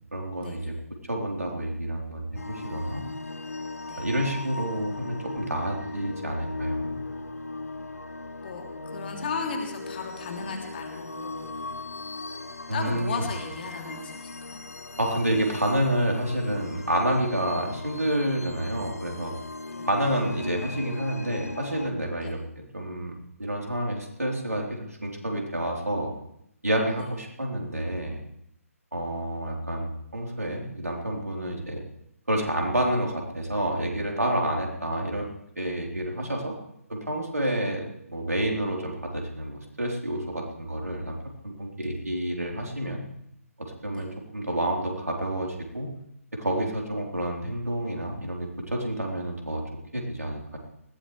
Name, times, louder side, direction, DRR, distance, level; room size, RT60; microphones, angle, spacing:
voice 1, 0.1-0.7 1.1-3.0 4.0-6.9 12.7-13.3 15.0-19.3 19.9-23.1 23.4-26.1 26.6-28.2 28.9-31.8 32.3-35.3 35.6-36.5 36.9-41.2 41.4-43.0 43.6-45.9 46.3-49.6 49.9-50.6, right 1 dB, 80° right, 0 dB, 3.7 m, -29 dB
sound 1, 2.4-21.9, left 3 dB, 70° left, 0.8 m, -38 dB
voice 2, 8.4-11.5 12.7-14.3 19.7-19.9 22.2-22.3 37.5-37.6 44.0-44.1, left 4 dB, 40° left, 1 dB, 3.1 m, -35 dB
20.0 x 16.0 x 3.3 m, 0.75 s
figure-of-eight pair, 140°, 8 cm